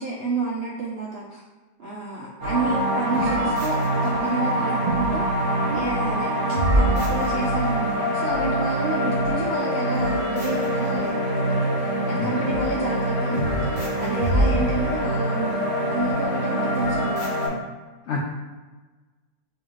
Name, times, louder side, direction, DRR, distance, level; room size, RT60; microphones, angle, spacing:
voice 1, 0.0-1.4 1.8-5.5 5.7-6.3 6.7-13.7 14.0-17.5, right 3 dB, 70° right, -4 dB, 0.6 m, -30 dB
sound 1, 2.4-17.5, right 1 dB, 55° right, 1.8 m, -24 dB
voice 2, 12.2-12.7 14.6-14.7 18.1-18.2, left 4 dB, 75° left, -2 dB, 0.6 m, -30 dB
5.5 x 2.4 x 3.1 m, 1.3 s
omnidirectional pair, 1.7 m